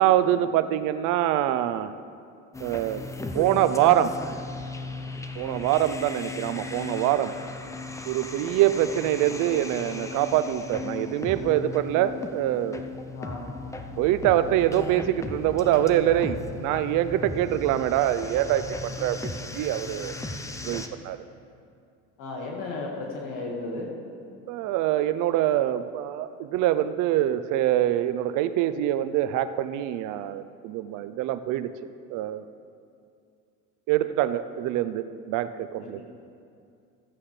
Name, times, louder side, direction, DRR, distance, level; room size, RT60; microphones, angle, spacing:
voice 1, 0.0-1.9 2.6-3.0 3.3-4.1 5.4-7.3 8.1-12.8 14.0-20.2 20.6-21.2 24.5-31.7 32.1-32.4 33.9-36.0, right 12 dB, 55° right, 12 dB, 0.6 m, -24 dB
sound 1, 2.5-20.9, left 3 dB, 10° left, 0.6 m, -37 dB
voice 2, 13.1-13.5 22.2-23.9 35.8-36.0, left 2 dB, 60° left, -1 dB, 1.8 m, -35 dB
15.0 x 8.7 x 3.3 m, 2.4 s
supercardioid pair, 100°, 37 cm